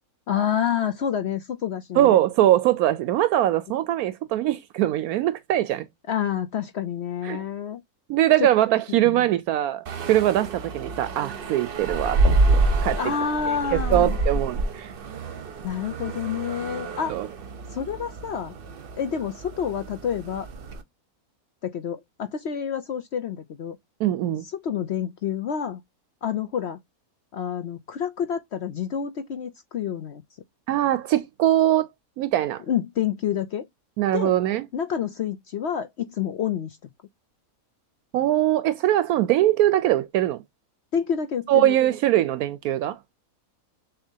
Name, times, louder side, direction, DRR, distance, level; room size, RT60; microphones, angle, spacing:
voice 1, 0.3-2.2 6.1-7.8 8.4-8.5 8.9-9.3 13.0-14.2 15.6-17.2 17.7-18.6 19.0-20.5 21.6-23.8 24.4-25.8 26.2-26.8 27.3-30.2 32.7-33.7 34.1-34.3 34.7-36.9 40.9-41.7, left 8 dB, 60° left, 0.8 m, -28 dB
voice 2, 2.0-5.9 7.2-7.4 8.1-12.4 12.8-13.0 13.9-14.9 17.1-17.3 24.0-24.4 30.7-31.9 32.2-32.6 34.0-34.6 38.1-40.4 41.5-43.0, right 13 dB, 80° right, 1.0 m, -22 dB
sound 1, 9.9-20.8, right 2 dB, 45° right, 0.8 m, -27 dB
6.6 x 2.8 x 2.7 m
omnidirectional pair, 1.5 m